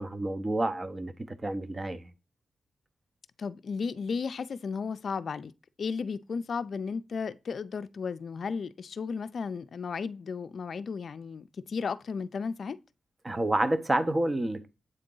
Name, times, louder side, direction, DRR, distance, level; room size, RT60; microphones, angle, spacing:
voice 1, 0.0-2.1 13.2-14.7, right 1 dB, 30° right, 0.7 m, -29 dB
voice 2, 3.4-5.5 5.8-12.8, left 5 dB, 65° left, 0.4 m, -34 dB
7.9 x 3.8 x 3.8 m
cardioid pair, 70°, 0 cm